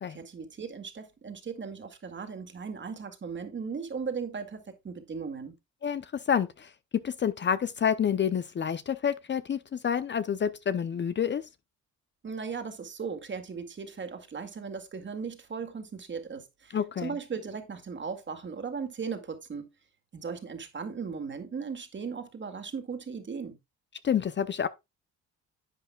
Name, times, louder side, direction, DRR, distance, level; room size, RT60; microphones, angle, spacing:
voice 1, 0.1-5.5 12.2-19.7 20.1-23.6, right 5 dB, 40° right, 2.1 m, -37 dB
voice 2, 5.8-6.7 7.0-11.4 16.7-17.1 24.0-24.7, left 8 dB, 40° left, 0.6 m, -28 dB
11.0 x 7.7 x 2.3 m
cardioid pair, 90°, 30 cm